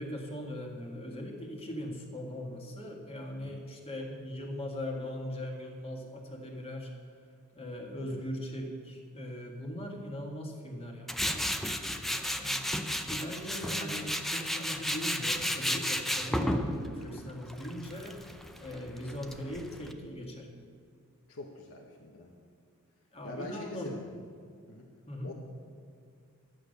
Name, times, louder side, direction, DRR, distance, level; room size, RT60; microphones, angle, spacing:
voice 1, 0.0-6.9 7.5-11.5 12.2-12.6 13.0-18.2 18.6-20.5 23.1-23.9 25.1-25.3, left 1 dB, 25° left, 1 dB, 1.9 m, -40 dB
Tools, 11.1-19.9, equal, ahead, 0.6 m, -33 dB
voice 2, 11.9-12.3 21.3-22.3 23.2-24.0 24.7-24.9 25.2-25.3, left 2 dB, 65° left, -1 dB, 1.1 m, -44 dB
12.5 x 8.9 x 6.6 m, 2.2 s
head